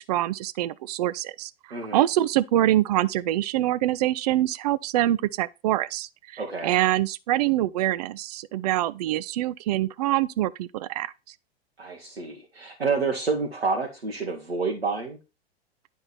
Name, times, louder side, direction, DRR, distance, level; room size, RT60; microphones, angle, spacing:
voice 1, 0.0-1.5 1.9-11.1, right 14 dB, 40° right, 0.4 m, -25 dB
voice 2, 1.7-2.0 6.4-6.7 11.8-15.2, right 4 dB, 80° right, 1.3 m, -28 dB
9.7 x 3.6 x 4.2 m
figure-of-eight pair, 95°, 31 cm